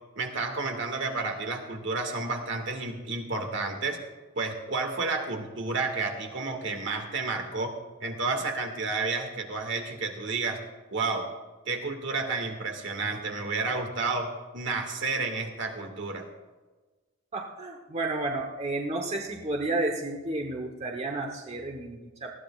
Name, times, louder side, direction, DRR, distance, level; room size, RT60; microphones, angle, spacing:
voice 1, 0.2-4.0 4.4-7.7 8.0-10.6 10.9-11.3 11.7-16.3, right 3 dB, 65° right, 3 dB, 2.0 m, -31 dB
voice 2, 17.3-22.3, right 2 dB, 35° right, 2 dB, 1.1 m, -31 dB
20.0 x 15.0 x 2.5 m, 1.3 s
head